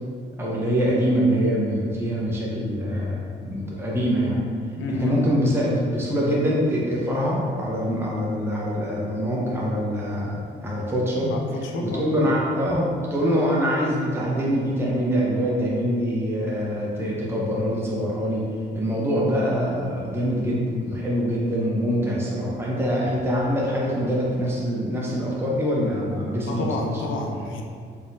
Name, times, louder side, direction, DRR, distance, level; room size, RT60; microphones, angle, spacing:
voice 1, 0.4-4.4 4.9-11.3 11.8-18.4 18.7-26.9, equal, 10° right, -5 dB, 0.8 m, -24 dB
voice 2, 4.8-5.2 11.3-12.1 26.4-27.6, left 2 dB, 80° left, 2 dB, 0.6 m, -30 dB
4.2 x 3.6 x 2.4 m, 2.2 s
cardioid pair, 90°, 20 cm